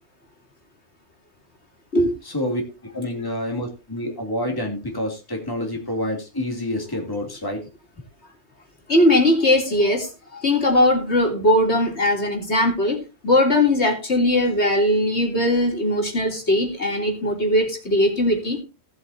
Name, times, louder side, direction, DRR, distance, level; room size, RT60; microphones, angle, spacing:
voice 1, 2.2-2.6 2.9-7.6, left 1 dB, 15° left, 2 dB, 2.8 m, -28 dB
voice 2, 8.9-18.6, left 1 dB, 55° left, 2 dB, 3.6 m, -19 dB
18.5 x 8.2 x 2.8 m, 0.28 s
omnidirectional pair, 1.3 m